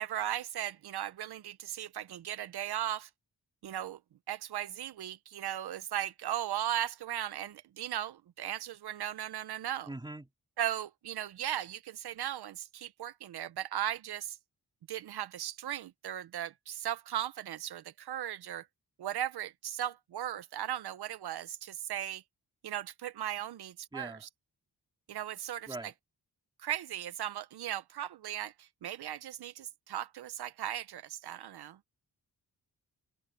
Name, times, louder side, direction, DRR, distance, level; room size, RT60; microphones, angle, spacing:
voice 1, 0.0-3.1 3.6-4.0 4.3-9.9 10.6-14.4 14.9-18.7 19.0-22.2 22.6-24.3 25.1-25.9 26.6-31.8, right 11 dB, 80° right, 0.7 m, -37 dB
voice 2, 9.8-10.3 23.9-24.2 25.7-25.9, right 2 dB, 10° right, 2.8 m, -42 dB
wide cardioid pair, 155°, 38 cm